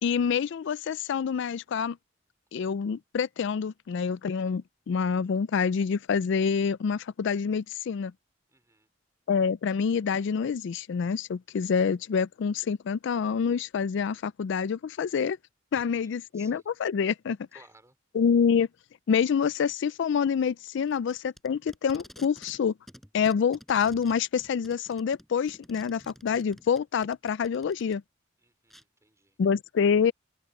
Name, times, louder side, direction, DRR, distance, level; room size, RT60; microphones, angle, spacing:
voice 1, 0.0-2.0 2.5-8.1 9.3-15.4 15.7-17.4 18.1-18.7 19.1-22.7 23.1-28.0 29.4-30.1, left 6 dB, 65° left, 0.4 m, -27 dB
voice 2, 8.5-8.9 15.7-16.7 17.5-17.9 28.4-29.4, right 2 dB, 15° right, 5.1 m, -58 dB
Packing tape duct tape, 20.9-22.6 22.9-27.9 28.7-28.8, equal, ahead, 7.9 m, -51 dB
head